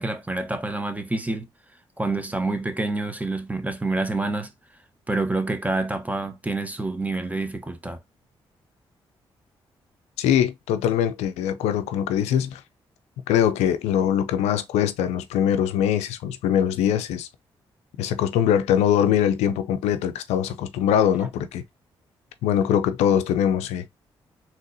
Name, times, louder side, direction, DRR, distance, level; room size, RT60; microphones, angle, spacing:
voice 1, 0.0-1.5 2.0-4.5 5.1-8.0, right 2 dB, 15° right, 0.9 m, -27 dB
voice 2, 10.2-12.6 13.3-17.3 18.0-21.6 22.4-23.8, left 9 dB, 85° left, 0.4 m, -22 dB
3.9 x 2.9 x 2.6 m
supercardioid pair, 50°, 11 cm